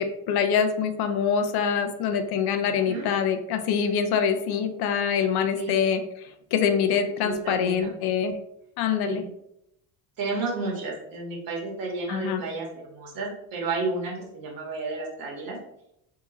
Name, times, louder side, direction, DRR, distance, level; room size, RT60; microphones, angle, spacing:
voice 1, 0.0-8.3 8.8-9.2 12.1-12.4, left 7 dB, 75° left, 8 dB, 0.7 m, -25 dB
voice 2, 7.2-7.9 9.0-9.3 10.2-15.6, right 3 dB, 60° right, -1 dB, 1.6 m, -32 dB
3.7 x 2.9 x 3.9 m, 0.78 s
cardioid pair, 110°, 39 cm